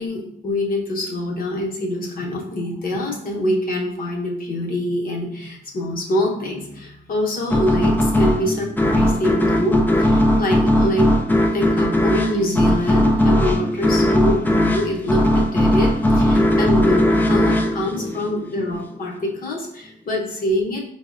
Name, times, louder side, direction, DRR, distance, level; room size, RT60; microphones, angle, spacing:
voice 1, 0.0-11.1 11.5-20.8, left 1 dB, 45° left, -1 dB, 0.9 m, -25 dB
sound 1, 7.5-18.8, left 1 dB, 10° left, 0.4 m, -18 dB
4.7 x 2.0 x 2.4 m, 0.75 s
cardioid pair, 90°, 20 cm